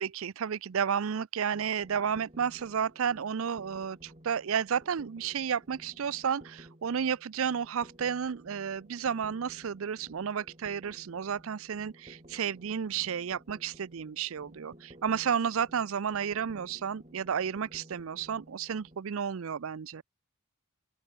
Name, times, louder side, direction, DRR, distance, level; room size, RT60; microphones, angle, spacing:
voice 1, 0.0-20.0, right 7 dB, 65° right, 0.5 m, -32 dB
sound 1, 1.5-19.0, right 1 dB, 30° right, 4.3 m, -55 dB
open air
head